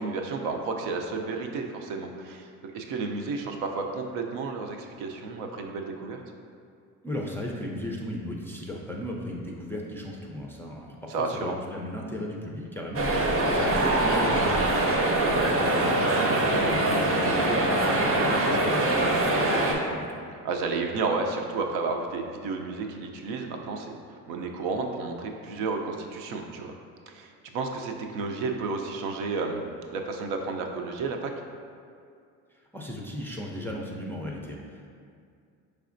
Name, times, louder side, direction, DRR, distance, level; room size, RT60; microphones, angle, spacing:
voice 1, 0.0-6.2 11.1-11.6 15.1-15.5 20.4-26.7 27.1-29.6 29.9-31.3, right 4 dB, 70° right, 3 dB, 0.6 m, -32 dB
voice 2, 7.0-20.2 32.7-34.9, left 1 dB, 5° left, -2 dB, 0.4 m, -36 dB
sound 1, 12.9-19.7, right 1 dB, 35° right, 0.7 m, -23 dB
4.8 x 3.2 x 2.5 m, 2.3 s
supercardioid pair, 75°, 41 cm